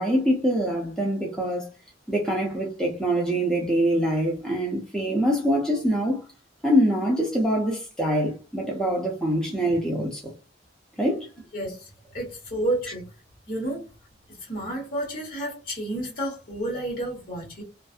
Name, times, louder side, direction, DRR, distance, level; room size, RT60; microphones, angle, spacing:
voice 1, 0.0-1.7 2.1-6.2 6.6-10.3 11.0-11.3, equal, 5° left, 0.6 m, -24 dB
voice 2, 11.5-13.1 13.5-13.9 14.5-17.6, right 1 dB, 50° left, 1.2 m, -30 dB
2.5 x 2.4 x 2.4 m
head